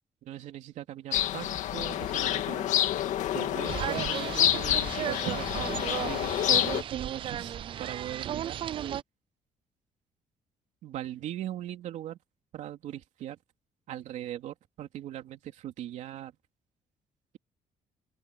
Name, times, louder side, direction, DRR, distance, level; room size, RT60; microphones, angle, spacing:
voice 1, 0.2-2.7 3.3-8.6 10.8-12.2 12.5-13.4 13.9-16.3, right 12 dB, 70° right, 3.2 m, -40 dB
sound 1, 1.1-6.8, left 12 dB, 75° left, 2.0 m, -28 dB
sound 2, 3.7-9.0, right 10 dB, 45° right, 0.5 m, -34 dB
cardioid pair, 170°, 13 cm